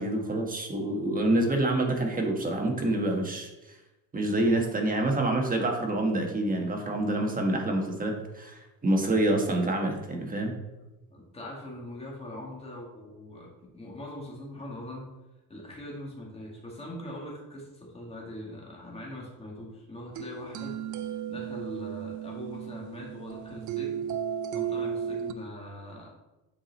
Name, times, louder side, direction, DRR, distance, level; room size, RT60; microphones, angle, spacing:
voice 1, 0.0-3.5 4.1-10.5, right 1 dB, 25° right, 2 dB, 1.3 m, -27 dB
voice 2, 11.1-15.1 15.5-20.8 21.0-24.0 24.5-26.1, left 1 dB, 15° left, -3 dB, 2.0 m, -42 dB
sound 1, 20.1-25.3, right 8 dB, 55° right, 0.5 m, -34 dB
7.5 x 4.7 x 4.1 m, 1.0 s
cardioid pair, 120°, 35 cm